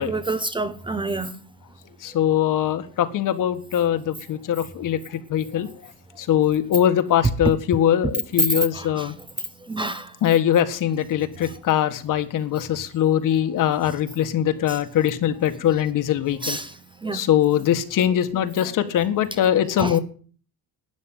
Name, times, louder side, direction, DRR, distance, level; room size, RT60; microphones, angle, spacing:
voice 1, 0.0-1.3 8.7-9.1 9.6-10.1 11.4-11.6 12.6-12.7 14.7-14.8 16.4-16.8 17.0-17.2 19.8-20.0, right 2 dB, 15° right, 0.8 m, -29 dB
voice 2, 2.0-5.7 6.2-9.1 10.2-16.6 17.1-20.0, left 10 dB, 55° left, 1.8 m, -22 dB
12.5 x 9.7 x 8.9 m
cardioid pair, 165°, 38 cm